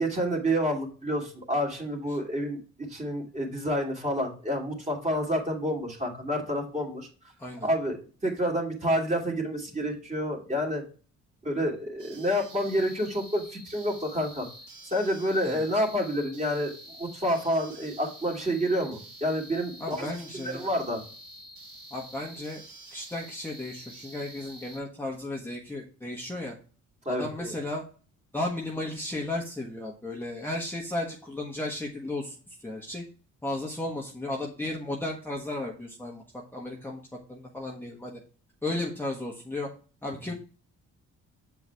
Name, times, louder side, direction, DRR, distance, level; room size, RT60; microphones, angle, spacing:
voice 1, 0.0-7.1 7.6-10.8 11.4-14.5 14.8-16.7 17.0-21.0 27.0-27.5, equal, 25° right, -1 dB, 2.9 m, -29 dB
sound 1, 12.0-24.8, right 1 dB, 80° right, 3.2 m, -48 dB
voice 2, 19.8-20.7 21.9-22.6 22.9-26.5 27.1-27.8 28.3-32.3 32.6-33.0 33.4-36.2 36.5-37.0 37.3-38.2 38.6-39.7 40.0-40.3, left 2 dB, 5° left, -3 dB, 1.4 m, -34 dB
7.7 x 4.8 x 3.5 m, 0.38 s
cardioid pair, 90°, 30 cm